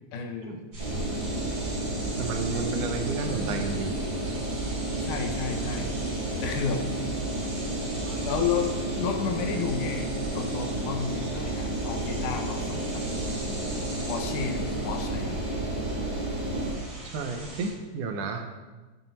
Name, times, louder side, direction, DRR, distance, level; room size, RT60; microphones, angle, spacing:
voice 1, 0.1-0.6 5.0-5.9 6.4-6.8 8.3-8.7 9.0-10.1 10.3-13.0 14.1-15.4, left 6 dB, 75° left, 5 dB, 2.2 m, -31 dB
sound 1, 0.7-17.7, right 1 dB, 35° right, 3.7 m, -40 dB
Engine, 0.8-16.7, right 2 dB, 50° right, 0.5 m, -31 dB
voice 2, 2.2-3.9 4.3-4.4 8.1-8.2 17.1-18.5, right 4 dB, 80° right, 4 dB, 2.2 m, -32 dB
9.1 x 5.9 x 4.0 m, 1.2 s
omnidirectional pair, 3.7 m